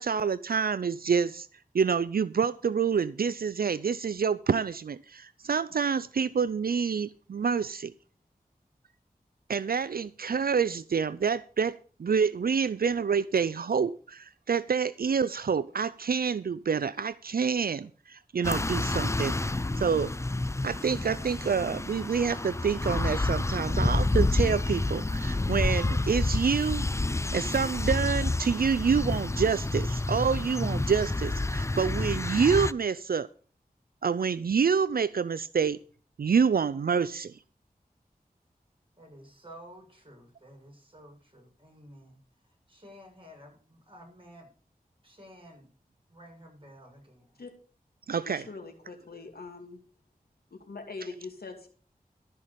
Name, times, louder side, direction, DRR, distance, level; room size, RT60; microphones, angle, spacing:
voice 1, 0.0-1.5 1.7-7.9 9.5-19.3 19.8-20.1 20.6-26.9 27.3-33.3 34.0-35.8 36.2-37.4 48.1-48.4, right 6 dB, 75° right, 0.4 m, -27 dB
sound 1, 18.4-32.7, left 2 dB, 20° left, 0.5 m, -29 dB
voice 2, 39.0-44.5 45.0-45.7 46.1-47.4, equal, 35° right, 7.1 m, -52 dB
voice 3, 48.2-49.8 50.5-51.7, left 3 dB, 85° left, 2.4 m, -42 dB
14.0 x 5.7 x 6.8 m
wide cardioid pair, 45°, 16 cm